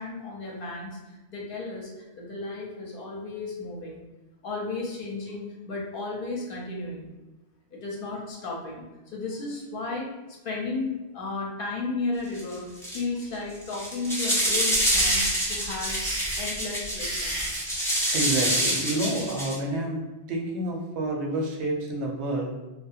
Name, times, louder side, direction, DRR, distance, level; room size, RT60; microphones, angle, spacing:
voice 1, 0.0-4.0 4.4-7.1 7.7-10.1 10.4-12.6 12.9-15.2 15.5-16.0 16.4-17.4, left 3 dB, 60° left, -2 dB, 0.7 m, -34 dB
sound 1, 12.4-12.5 12.8-13.2 13.6-19.5, equal, 5° left, 0.4 m, -26 dB
sound 2, 14.4-17.7, right 1 dB, 30° right, 1.2 m, -32 dB
voice 2, 18.1-22.5, right 1 dB, 90° right, 0 dB, 0.9 m, -29 dB
2.6 x 2.2 x 2.4 m, 1.1 s
omnidirectional pair, 1.1 m